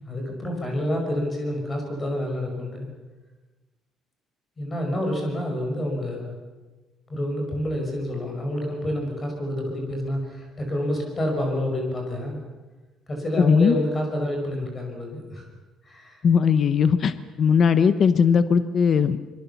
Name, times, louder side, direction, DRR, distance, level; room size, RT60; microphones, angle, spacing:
voice 1, 0.0-2.9 4.6-6.3 7.1-12.4 13.1-15.5 15.8-16.2, left 1 dB, 20° left, 2 dB, 5.8 m, -28 dB
voice 2, 13.4-13.8 16.2-19.2, left 6 dB, 35° left, 12 dB, 0.9 m, -19 dB
25.5 x 23.0 x 7.1 m, 1.2 s
cardioid pair, 170°, 0 cm